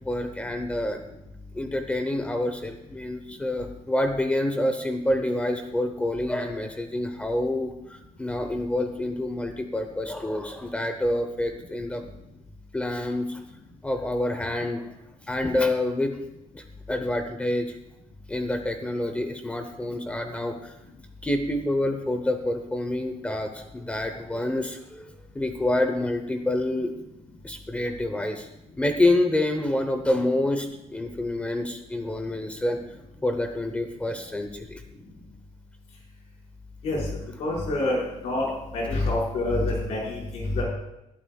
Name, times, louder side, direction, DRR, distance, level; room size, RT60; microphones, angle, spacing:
voice 1, 0.0-1.0 1.5-12.0 12.7-13.4 13.8-14.8 15.3-16.2 16.5-17.8 18.3-20.7 21.2-26.9 27.4-28.5 28.8-32.8 33.2-34.8, left 1 dB, 10° left, 6 dB, 0.7 m, -27 dB
voice 2, 37.4-40.6, left 2 dB, 60° left, -3 dB, 5.1 m, -27 dB
20.0 x 11.5 x 2.3 m, 0.89 s
cardioid pair, 175°, 12 cm